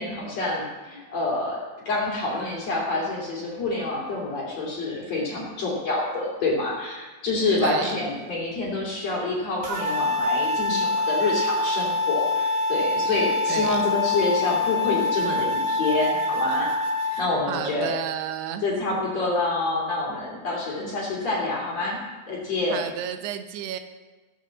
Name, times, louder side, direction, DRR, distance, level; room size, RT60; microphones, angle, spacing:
voice 1, 0.0-16.7 17.2-18.0 18.6-22.0 22.3-22.9, left 2 dB, 45° left, -4 dB, 3.6 m, -27 dB
voice 2, 7.6-7.9 13.5-13.8 17.1-18.7 20.8-21.0 22.7-23.8, right 9 dB, 85° right, 9 dB, 3.0 m, -32 dB
sound 1, 9.6-17.2, left 2 dB, 55° right, 1.4 m, -25 dB
16.0 x 7.3 x 7.4 m, 1.3 s
omnidirectional pair, 4.6 m